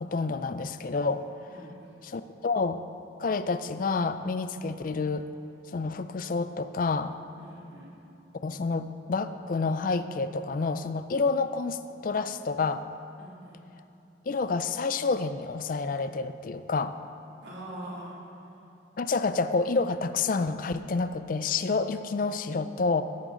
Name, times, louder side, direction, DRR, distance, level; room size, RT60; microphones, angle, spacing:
voice 1, 0.0-1.5 2.0-2.8 3.2-5.3 5.7-7.1 8.4-12.8 14.3-16.9 19.0-23.0, left 4 dB, 45° left, 11 dB, 0.4 m, -29 dB
voice 2, 1.5-2.0 7.4-7.9 13.2-13.6 17.4-18.2, right 1 dB, 75° right, -5 dB, 2.5 m, -43 dB
14.0 x 8.9 x 3.8 m, 2.9 s
head